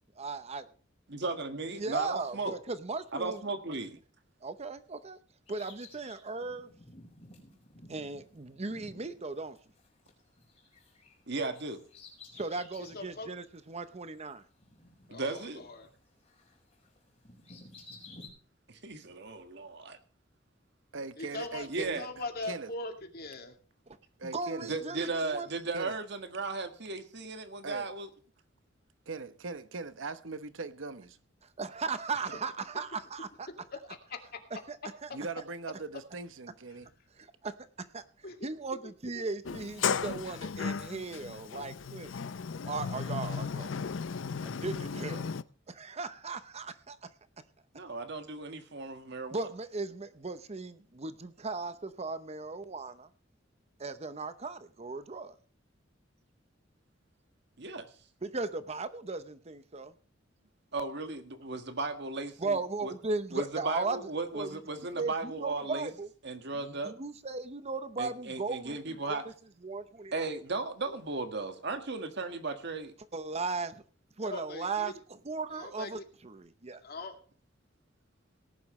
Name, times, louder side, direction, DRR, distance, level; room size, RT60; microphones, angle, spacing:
voice 1, 0.2-0.7 1.8-3.4 4.4-5.2 5.5-6.7 7.9-9.6 12.4-14.4 23.9-24.0 24.2-25.5 31.6-33.5 34.7-34.8 35.0-35.1 37.2-38.0 38.4-42.1 42.7-43.9 44.4-45.3 45.7-47.1 49.3-53.1 53.8-55.3 58.2-59.9 62.4-64.0 64.3-64.5 65.0-66.1 66.5-69.3 69.6-70.3 73.1-73.8 74.2-74.9 75.2-76.8, right 3 dB, 35° right, 0.8 m, -37 dB
voice 2, 1.1-2.5 3.1-4.0 11.3-11.8 15.1-15.6 18.7-20.0 21.7-22.1 24.6-28.1 47.7-49.4 57.6-57.9 60.7-62.9 63.3-65.9 66.2-66.9 68.0-69.2 70.1-72.9, right 3 dB, 65° right, 1.7 m, -36 dB
Bird vocalization bird call bird song, 5.5-10.1 10.4-13.1 13.5-13.6 14.5-16.0 16.3-18.3, left 2 dB, 30° left, 5.0 m, -54 dB
voice 3, 12.8-13.3 15.1-15.9 21.2-23.6 33.9-34.4 36.8-36.9 38.2-38.5 39.1-39.6 74.2-75.0 75.5-76.0 76.8-77.2, left 2 dB, 55° left, 2.2 m, -41 dB
voice 4, 20.9-22.0 22.4-22.7 24.2-24.7 25.7-26.0 27.6-27.9 29.1-31.2 35.1-36.9, right 3 dB, 90° right, 0.9 m, -40 dB
Sliding door, 39.5-45.4, left 6 dB, 75° left, 0.5 m, -35 dB
18.0 x 11.0 x 3.2 m
head